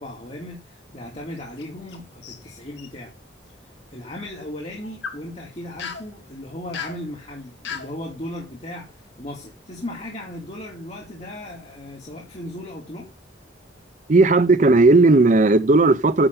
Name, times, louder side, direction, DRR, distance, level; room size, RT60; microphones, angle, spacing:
voice 1, 0.0-3.1 3.9-13.1, left 1 dB, 35° left, 2.5 m, -36 dB
sound 1, 1.3-2.0 2.2-2.9 4.8-5.2 5.8-6.1 6.7-7.0 7.6-7.9, left 6 dB, 75° left, 2.3 m, -34 dB
voice 2, 14.1-16.3, right 3 dB, 45° right, 0.6 m, -15 dB
9.8 x 4.1 x 6.6 m
head